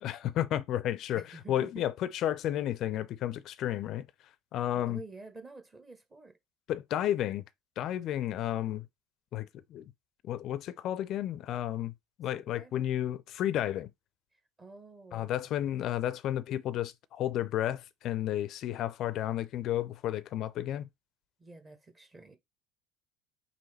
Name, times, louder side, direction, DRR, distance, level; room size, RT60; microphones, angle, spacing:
voice 1, 0.0-4.1 4.5-5.0 6.7-7.4 7.8-8.9 9.3-9.8 10.2-11.9 12.2-13.9 15.1-20.9, left 12 dB, 50° left, 0.4 m, -32 dB
voice 2, 1.1-1.8 4.7-6.4 12.4-12.9 14.6-15.7 21.4-22.4, right 3 dB, 25° right, 1.0 m, -49 dB
5.5 x 2.7 x 3.3 m
figure-of-eight pair, 65°, 0 cm